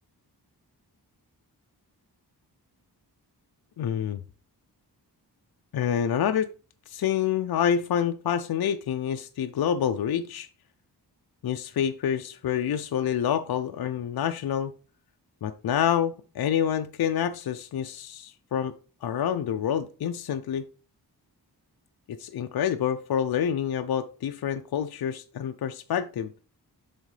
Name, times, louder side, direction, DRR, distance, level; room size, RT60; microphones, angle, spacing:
voice 1, 3.8-4.2 5.7-6.5 6.9-10.5 11.4-14.7 15.4-18.7 19.0-20.7 22.1-26.3, left 9 dB, 65° left, 0.5 m, -27 dB
10.5 x 3.7 x 3.2 m
wide cardioid pair, 100°, 40 cm